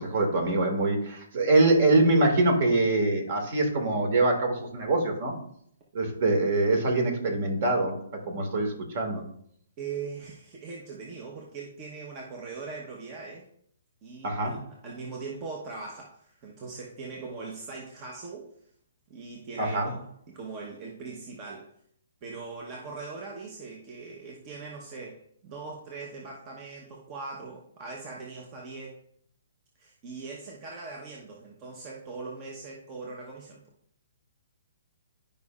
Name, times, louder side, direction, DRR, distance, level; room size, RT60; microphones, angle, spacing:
voice 1, 0.0-5.4 5.9-9.2 14.2-14.5 19.6-19.9, right 2 dB, 45° right, 3 dB, 2.0 m, -24 dB
voice 2, 9.8-13.5 14.0-18.5 19.1-21.7 22.2-29.0 29.8-33.6, right 4 dB, 25° right, -1 dB, 1.0 m, -40 dB
11.5 x 5.4 x 2.4 m, 0.66 s
hypercardioid pair, 160°, 0 cm